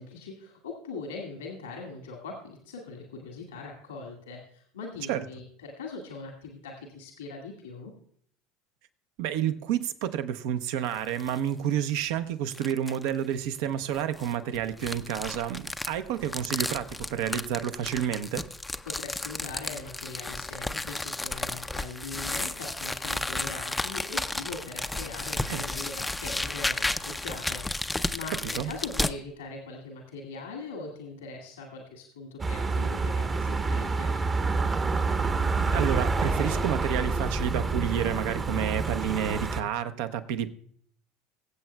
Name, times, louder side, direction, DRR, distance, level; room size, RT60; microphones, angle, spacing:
voice 1, 0.0-7.9 18.9-34.5, left 3 dB, 85° left, 1 dB, 1.8 m, -41 dB
voice 2, 9.2-18.5 25.5-25.6 28.6-28.7 35.7-40.5, right 9 dB, 65° right, 10 dB, 0.7 m, -30 dB
sound 1, 10.8-11.4 11.8-11.9 12.5-13.1 13.9-29.1, left 2 dB, 10° left, 0.5 m, -33 dB
sound 2, 32.4-39.6, right 4 dB, 30° right, 0.9 m, -27 dB
23.0 x 7.8 x 2.2 m, 0.63 s
hypercardioid pair, 70°, 0 cm